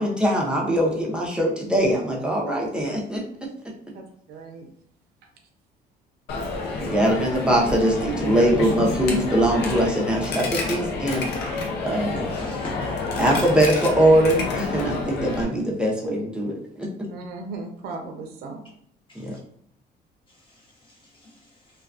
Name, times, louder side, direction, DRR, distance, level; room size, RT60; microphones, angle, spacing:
voice 1, 0.0-3.5 6.8-11.3 11.8-12.2 13.2-16.9 19.1-19.4, right 1 dB, 5° right, -3 dB, 0.6 m, -22 dB
voice 2, 3.9-4.7 17.1-18.6, right 3 dB, 70° right, 3 dB, 0.5 m, -37 dB
Coin (dropping), 6.3-15.4, left 3 dB, 75° left, 0.6 m, -29 dB
voice 3, 12.2-13.4 19.1-19.4 20.3-21.8, left 1 dB, 30° left, -4 dB, 1.0 m, -41 dB
2.3 x 2.3 x 2.4 m, 0.69 s
cardioid pair, 110°, 17 cm